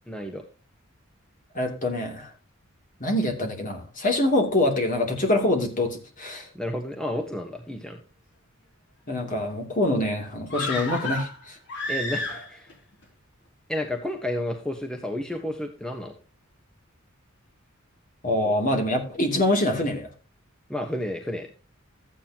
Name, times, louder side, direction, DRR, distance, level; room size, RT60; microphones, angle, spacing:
voice 1, 0.1-0.4 6.5-8.0 11.9-12.7 13.7-16.1 20.7-21.5, left 1 dB, 5° left, 3 dB, 1.2 m, -31 dB
voice 2, 1.5-2.3 3.0-6.5 9.1-11.6 18.2-20.1, left 1 dB, 40° left, 3 dB, 2.9 m, -25 dB
sound 1, 10.5-12.7 13.0-13.1, left 1 dB, 60° left, 3.2 m, -31 dB
14.0 x 9.1 x 2.9 m, 0.35 s
head